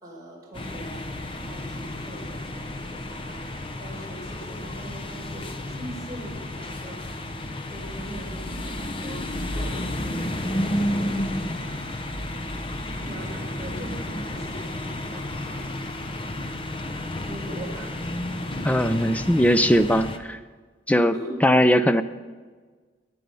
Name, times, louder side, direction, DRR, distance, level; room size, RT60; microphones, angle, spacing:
voice 1, 0.0-7.0 7.7-12.1 13.0-15.7 17.2-18.1 21.1-21.4, right 1 dB, 20° right, -4 dB, 4.4 m, -42 dB
sound 1, 0.5-20.2, left 1 dB, 25° left, 0.8 m, -32 dB
voice 2, 18.6-20.4 20.9-21.1 21.4-22.0, equal, 5° left, 11 dB, 0.4 m, -19 dB
21.5 x 9.1 x 5.4 m, 1.4 s
head